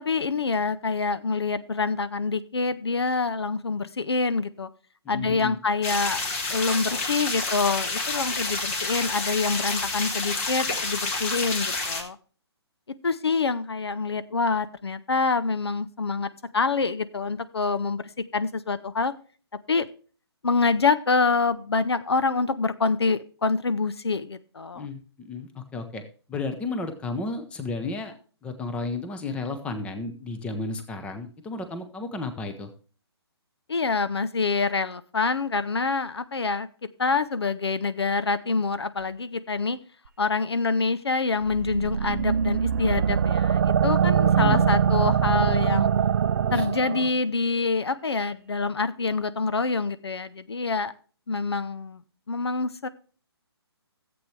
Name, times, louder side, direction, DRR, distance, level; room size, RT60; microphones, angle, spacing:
voice 1, 0.0-4.7 5.1-6.2 6.5-12.2 13.0-19.1 19.7-19.9 20.4-24.9 33.7-36.7 37.0-39.8 40.2-45.9 46.5-50.9 51.3-52.0 52.3-52.9, left 4 dB, 70° left, 13 dB, 0.6 m, -26 dB
voice 2, 5.0-5.6 24.7-26.0 26.3-28.1 28.4-32.7 44.3-44.7 46.5-46.7, left 3 dB, 10° left, 7 dB, 0.8 m, -33 dB
sound 1, 5.8-12.0, left 3 dB, 30° left, 1.7 m, -29 dB
sound 2, 41.5-47.1, right 7 dB, 45° right, 0.5 m, -22 dB
14.0 x 7.9 x 3.2 m, 0.40 s
figure-of-eight pair, 135°, 14 cm